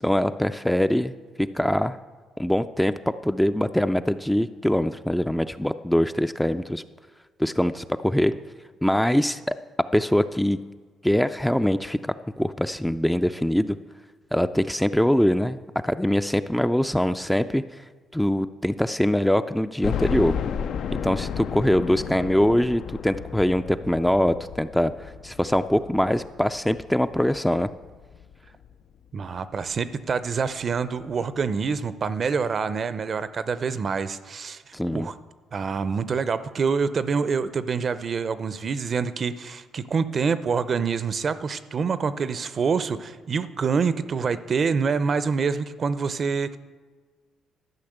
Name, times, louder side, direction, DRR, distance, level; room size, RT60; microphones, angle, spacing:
voice 1, 0.0-2.0 2.4-6.8 7.4-8.3 8.8-9.5 9.9-10.6 11.0-13.8 14.3-15.6 15.8-17.6 18.1-20.3 21.0-27.7 34.7-35.1, equal, 5° left, 10 dB, 0.4 m, -23 dB
sound 1, 19.8-28.7 29.2-29.3 29.7-29.8 31.0-31.1 31.4-31.5, left 7 dB, 70° left, 0.5 m, -33 dB
voice 2, 29.1-35.1 35.5-46.6, right 5 dB, 45° right, 14 dB, 0.6 m, -26 dB
12.0 x 5.8 x 8.0 m, 1.4 s
cardioid pair, 90°, 0 cm